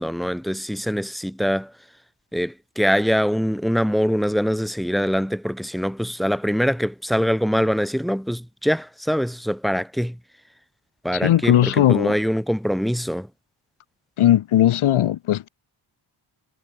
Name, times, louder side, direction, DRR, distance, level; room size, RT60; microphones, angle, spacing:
voice 1, 0.0-1.7 2.3-10.2 11.0-13.3, equal, ahead, 4.3 m, -23 dB
voice 2, 11.1-12.1 14.2-15.5, left 12 dB, 80° left, 1.5 m, -18 dB
wide cardioid pair, 145°, 48 cm